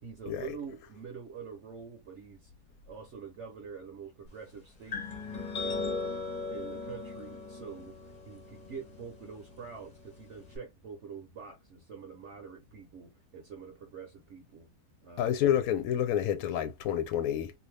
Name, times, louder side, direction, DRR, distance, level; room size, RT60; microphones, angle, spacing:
voice 1, 0.0-2.5 2.9-5.0 5.3-6.2 6.5-8.0 8.3-14.7 15.0-15.3, right 6 dB, 55° right, 1.0 m, -46 dB
sound 1, 4.9-10.6, left 3 dB, 40° left, 0.8 m, -39 dB
voice 2, 15.2-17.5, left 10 dB, 75° left, 1.0 m, -29 dB
2.6 x 2.6 x 3.2 m
omnidirectional pair, 1.6 m